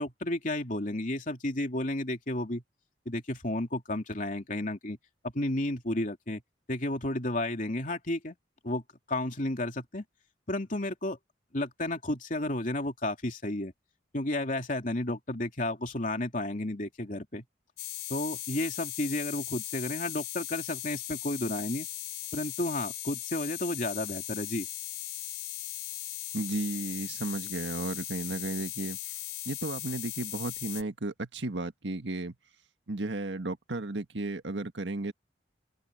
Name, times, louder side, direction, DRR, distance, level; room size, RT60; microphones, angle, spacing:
voice 1, 0.0-2.6 3.0-5.0 5.3-6.4 6.7-8.3 8.6-8.8 9.1-10.0 10.5-11.2 11.5-13.7 14.1-17.4 18.1-21.9 22.3-24.7, left 1 dB, 45° left, 2.9 m, -32 dB
sound 1, 17.8-30.8, left 15 dB, 65° left, 5.8 m, -38 dB
voice 2, 26.3-29.0 29.4-32.4 32.9-35.1, right 2 dB, 90° right, 1.6 m, -34 dB
open air
head